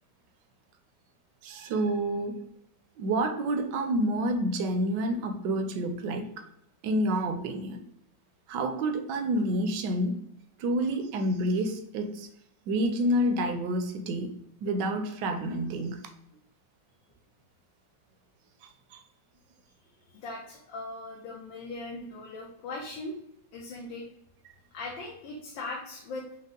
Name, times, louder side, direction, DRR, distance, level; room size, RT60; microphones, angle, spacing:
voice 1, 1.4-2.4 3.0-6.5 6.8-7.8 8.5-10.2 10.6-12.3 12.7-14.3 14.6-16.0 18.9-19.0, right 1 dB, 75° right, 7 dB, 1.1 m, -28 dB
voice 2, 20.1-23.2 23.5-24.1 24.7-26.2, left 2 dB, 80° left, -2 dB, 1.5 m, -39 dB
5.3 x 2.1 x 3.7 m, 0.76 s
omnidirectional pair, 2.0 m